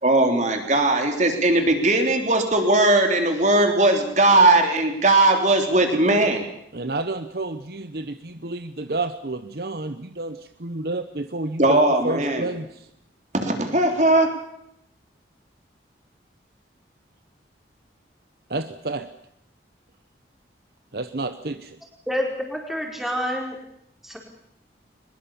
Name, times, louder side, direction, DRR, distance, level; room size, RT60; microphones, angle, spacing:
voice 1, 0.0-6.4 11.6-12.5 13.3-14.3, right 2 dB, 40° right, 4 dB, 3.3 m, -19 dB
voice 2, 6.7-12.9 18.5-19.1 20.9-21.8, right 2 dB, 55° right, 10 dB, 1.0 m, -30 dB
voice 3, 22.1-23.5 24.0-24.2, equal, ahead, 1 dB, 4.5 m, -27 dB
22.5 x 21.5 x 7.2 m, 0.75 s
head